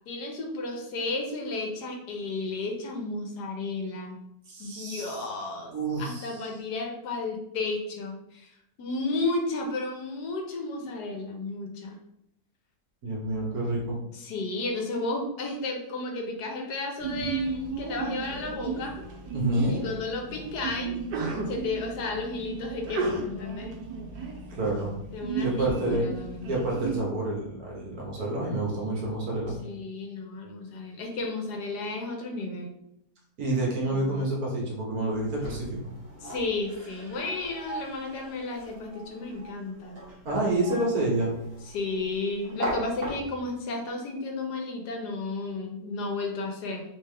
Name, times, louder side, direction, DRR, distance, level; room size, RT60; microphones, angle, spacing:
voice 1, 0.1-4.2 4.6-5.7 6.0-8.5 8.8-12.0 14.1-18.9 19.7-20.9 21.5-23.7 25.1-26.6 29.6-32.7 33.9-34.2 36.2-40.0 41.7-46.8, left 3 dB, 75° left, 2 dB, 1.3 m, -33 dB
voice 2, 4.5-5.3 5.7-6.4 13.0-14.0 19.3-19.7 24.5-25.0 25.4-26.0 26.5-29.6 33.4-35.9 40.2-41.3, right 2 dB, 65° right, -3 dB, 1.6 m, -28 dB
Sneeze, 17.0-27.0, right 4 dB, 90° right, 1.4 m, -34 dB
sound 1, 35.1-43.6, right 1 dB, 40° right, 1.3 m, -40 dB
3.6 x 3.3 x 3.3 m, 0.79 s
omnidirectional pair, 1.8 m